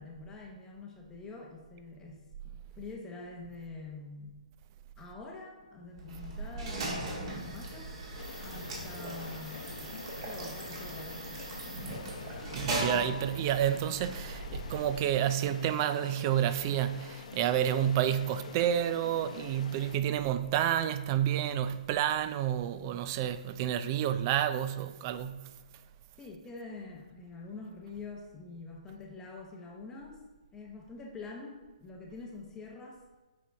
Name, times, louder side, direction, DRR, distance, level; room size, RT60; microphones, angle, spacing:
voice 1, 0.0-4.4 5.0-7.9 8.4-9.7 10.2-11.5 26.2-30.2 30.5-33.0, left 3 dB, 10° left, 0.8 m, -46 dB
sound 1, 5.9-15.2, right 1 dB, 40° right, 1.8 m, -39 dB
sound 2, 8.2-20.0, left 5 dB, 60° left, 0.9 m, -47 dB
voice 2, 12.5-25.5, right 10 dB, 25° right, 0.4 m, -30 dB
7.8 x 5.3 x 3.4 m
hypercardioid pair, 160°, 4 cm